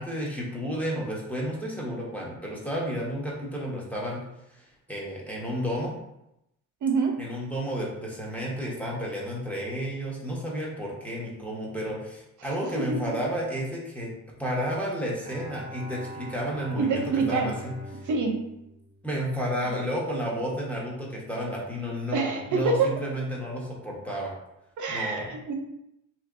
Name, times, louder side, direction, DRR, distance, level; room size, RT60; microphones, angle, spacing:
voice 1, 0.0-4.2 4.6-5.9 7.2-14.1 14.4-18.0 19.0-24.3 24.9-25.3, equal, 5° left, -5 dB, 1.0 m, -32 dB
voice 2, 6.8-7.2 12.7-13.1 16.8-17.5 18.0-18.5 22.1-22.9 24.8-25.5, right 4 dB, 60° right, 2 dB, 0.6 m, -26 dB
Bowed string instrument, 15.2-19.7, right 1 dB, 15° right, 0.5 m, -44 dB
3.2 x 2.8 x 2.5 m, 0.85 s
cardioid pair, 75°, 33 cm